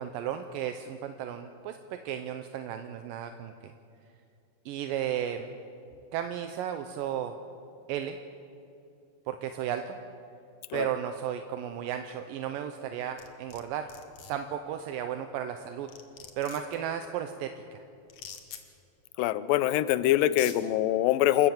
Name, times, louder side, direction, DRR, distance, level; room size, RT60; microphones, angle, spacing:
voice 1, 0.0-3.7 4.7-5.5 6.1-7.4 7.9-8.2 9.3-10.0 10.7-13.9 14.3-15.9 16.4-17.8, right 9 dB, 80° right, 7 dB, 2.4 m, -34 dB
sound 1, 13.2-13.6 13.9-14.3 15.5-15.6 15.9-16.7 18.1-18.6 19.7-19.8 20.2-20.6, left 8 dB, 55° left, 2.1 m, -43 dB
voice 2, 19.2-21.5, left 13 dB, 80° left, 15 dB, 2.3 m, -24 dB
27.5 x 15.5 x 7.1 m, 2.6 s
omnidirectional pair, 4.2 m